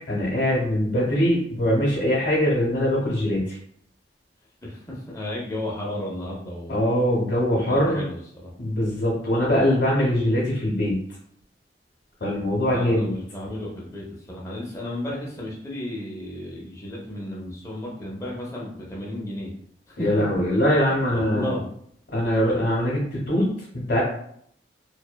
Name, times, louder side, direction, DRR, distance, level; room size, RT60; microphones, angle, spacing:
voice 1, 0.1-3.6 6.7-8.0 8.6-11.0 12.2-13.2 20.0-21.5 22.1-24.0, equal, 75° left, -5 dB, 0.6 m, -22 dB
voice 2, 4.6-6.8 7.5-8.5 12.6-19.5 19.9-20.0 20.9-21.6, left 1 dB, 15° left, -4 dB, 0.5 m, -33 dB
2.6 x 2.1 x 2.2 m, 0.67 s
head